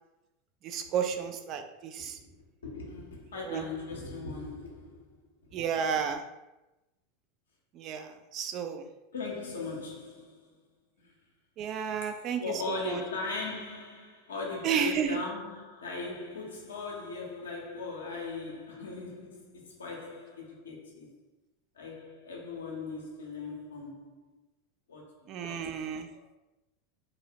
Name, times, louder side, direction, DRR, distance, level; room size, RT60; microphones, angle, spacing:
voice 1, 0.6-2.2 3.4-3.6 5.5-6.2 7.7-8.9 11.6-12.4 12.7-13.0 14.6-15.2 25.3-26.1, right 7 dB, 45° right, 0.3 m, -32 dB
voice 2, 2.0-5.2 9.1-10.5 11.0-11.1 12.0-21.2 21.7-24.3 24.9-25.5 26.1-26.2, left 3 dB, 85° left, 0.7 m, -39 dB
2.7 x 2.0 x 2.7 m
hypercardioid pair, 90°, 0 cm